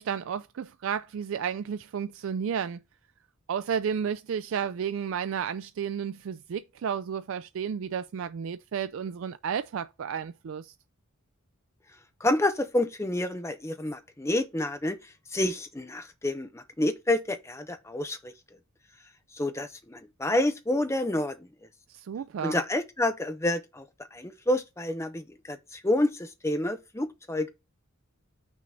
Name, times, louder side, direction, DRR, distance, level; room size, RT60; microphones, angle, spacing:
voice 1, 0.0-2.8 3.5-10.7 21.9-22.6, right 7 dB, 65° right, 0.3 m, -32 dB
voice 2, 12.2-15.0 15.3-18.3 19.3-21.4 22.4-23.8 24.1-27.5, left 1 dB, 15° left, 0.6 m, -28 dB
6.2 x 3.9 x 5.8 m
head